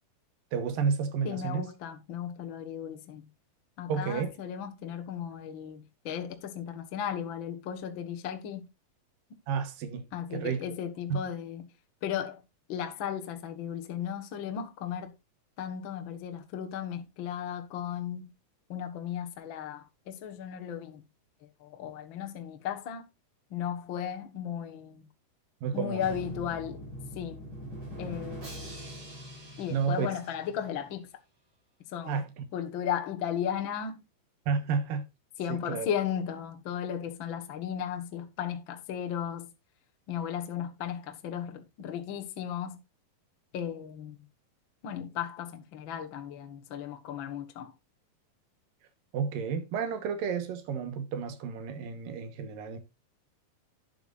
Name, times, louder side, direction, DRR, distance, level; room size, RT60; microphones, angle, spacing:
voice 1, 0.5-1.6 3.9-4.3 9.5-10.0 10.3-10.6 11.1-11.2 25.6-26.0 29.7-30.2 32.1-32.4 34.5-35.1 35.5-35.9 49.1-52.8, right 6 dB, 70° right, 2.8 m, -31 dB
voice 2, 1.2-3.3 3.8-8.7 10.1-11.7 12.0-12.4 12.7-15.1 15.6-18.3 18.7-21.0 21.4-23.0 23.5-25.0 25.7-26.9 27.1-27.4 28.0-28.7 29.6-31.1 31.9-32.2 32.5-34.0 35.4-39.5 40.1-42.8 43.5-44.3 44.8-47.7, left 9 dB, 60° left, 1.3 m, -35 dB
Drum, 26.0-30.9, right 1 dB, 35° right, 4.5 m, -43 dB
11.5 x 9.1 x 2.5 m
omnidirectional pair, 4.3 m